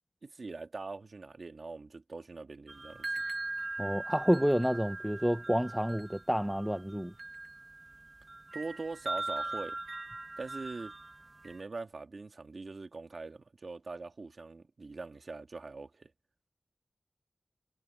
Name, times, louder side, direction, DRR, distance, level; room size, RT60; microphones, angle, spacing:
voice 1, 0.2-3.1 8.5-9.8 10.4-10.9 11.4-16.1, right 3 dB, 65° right, 2.2 m, -42 dB
sound 1, 2.7-11.6, right 2 dB, 45° right, 1.4 m, -40 dB
voice 2, 3.8-7.1, equal, 5° right, 0.6 m, -29 dB
wide cardioid pair, 95°, 0 cm